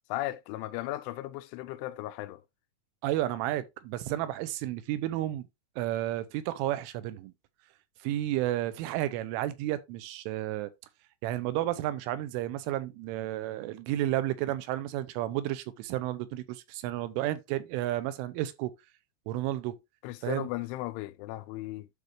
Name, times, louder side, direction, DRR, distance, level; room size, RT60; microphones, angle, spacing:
voice 1, 0.1-2.4 20.0-21.9, left 16 dB, 90° left, 3.1 m, -36 dB
voice 2, 3.0-5.5 5.8-7.3 8.0-10.7 11.2-18.7 19.3-19.7 20.2-20.5, right 14 dB, 90° right, 3.3 m, -32 dB
12.0 x 4.4 x 3.0 m
omnidirectional pair, 5.5 m